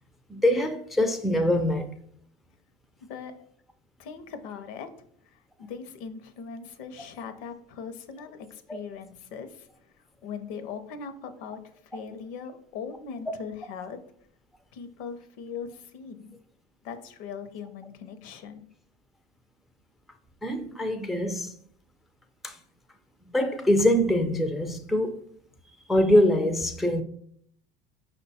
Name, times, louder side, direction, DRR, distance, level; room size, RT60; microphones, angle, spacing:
voice 1, 0.3-1.9 8.7-8.8 20.4-21.5 22.4-22.6 23.3-25.2 25.9-27.0, left 1 dB, ahead, 0.3 m, -23 dB
voice 2, 4.0-4.9 5.3-9.7 10.2-14.0 14.7-16.3 16.8-18.7, left 6 dB, 70° left, 0.6 m, -40 dB
5.2 x 2.2 x 4.1 m
supercardioid pair, 95°, 21 cm